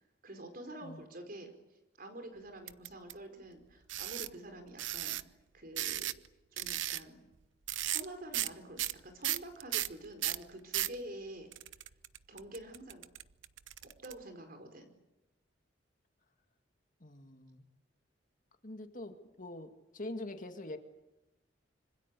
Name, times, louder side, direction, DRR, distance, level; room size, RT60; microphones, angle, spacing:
voice 1, 0.0-1.5 2.0-6.1 6.5-7.2 7.8-11.5 12.3-13.0 13.8-14.9, right 1 dB, 50° right, 7 dB, 4.9 m, -47 dB
sound 1, 2.7-3.1 3.9-4.3 4.8-5.2 5.8-6.3 6.6-7.0 7.7-8.1 8.3-8.5 8.8-11.0 11.5-14.1, right 13 dB, 85° right, 0.9 m, -35 dB
voice 2, 17.0-17.7 18.6-20.8, left 2 dB, 45° left, 6 dB, 2.1 m, -44 dB
26.0 x 25.5 x 8.5 m, 0.99 s
head